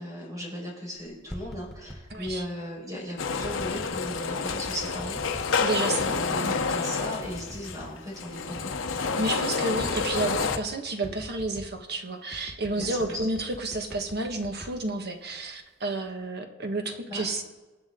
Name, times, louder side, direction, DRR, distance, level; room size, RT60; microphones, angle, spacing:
voice 1, 0.0-5.2 6.0-8.7 9.0-9.2 12.8-13.1 17.1-17.2, left 1 dB, 20° right, -2 dB, 4.9 m, -37 dB
sound 1, 1.1-2.4 3.4-4.0 4.5-5.5 6.0-6.8 7.2-8.0 8.2-8.3 8.6-9.4 9.8-10.7 11.0-11.8 12.3-15.4 15.8-16.2, equal, ahead, 1.0 m, -43 dB
voice 2, 2.1-2.4 5.6-6.1 6.4-6.6 9.2-17.4, right 2 dB, 55° right, 4 dB, 1.6 m, -31 dB
sound 2, 3.2-10.6, left 5 dB, 80° left, 0.9 m, -29 dB
24.5 x 8.8 x 3.8 m, 1.2 s
head